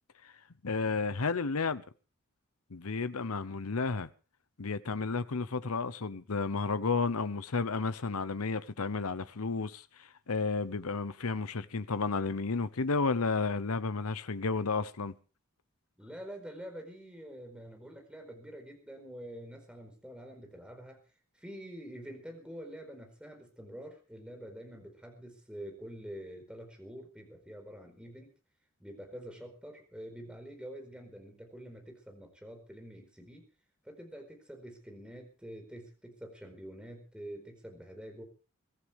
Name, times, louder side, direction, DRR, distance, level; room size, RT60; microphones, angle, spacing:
voice 1, 0.6-1.8 2.7-4.1 4.6-15.1, left 4 dB, 80° left, 0.9 m, -32 dB
voice 2, 16.0-21.0 21.3-28.3 28.8-33.5 33.8-38.2, equal, 5° right, 4.7 m, -46 dB
23.5 x 15.0 x 3.6 m
head